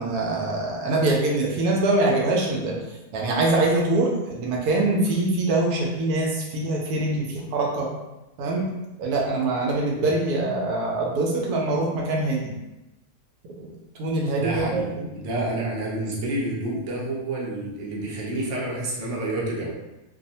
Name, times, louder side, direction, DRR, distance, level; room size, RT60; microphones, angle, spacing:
voice 1, 0.0-7.9 8.4-8.7 9.0-12.5 13.6-13.7 14.0-15.1, right 2 dB, 90° right, -2 dB, 1.2 m, -24 dB
voice 2, 14.4-19.8, right 1 dB, 60° right, -4 dB, 0.9 m, -29 dB
2.9 x 2.0 x 2.7 m, 0.97 s
omnidirectional pair, 1.6 m